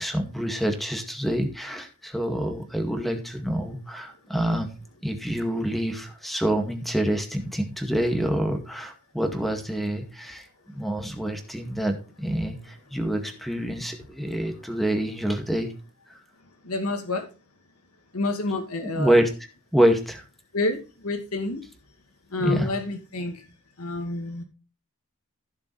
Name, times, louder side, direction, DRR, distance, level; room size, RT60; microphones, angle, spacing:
voice 1, 0.0-4.7 5.0-10.5 10.7-15.7 19.0-19.3 19.7-20.2 22.4-22.7, right 1 dB, ahead, 2.0 m, -26 dB
voice 2, 16.6-17.3 18.1-19.2 20.5-21.6 22.3-23.4 23.8-24.4, left 2 dB, 80° left, 2.3 m, -28 dB
15.0 x 7.0 x 3.3 m
head